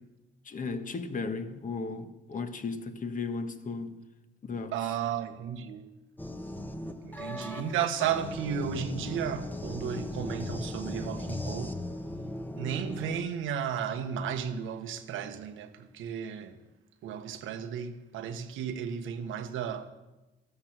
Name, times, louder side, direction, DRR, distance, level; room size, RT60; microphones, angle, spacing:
voice 1, 0.4-4.0 4.4-4.7, left 4 dB, 40° left, 1.4 m, -35 dB
voice 2, 4.7-5.9 7.0-11.8 12.6-16.6 17.0-19.9, right 8 dB, 90° right, 1.2 m, -34 dB
sound 1, 6.2-13.2, left 1 dB, 10° left, 1.1 m, -38 dB
14.0 x 12.5 x 6.0 m
cardioid pair, 90°, 20 cm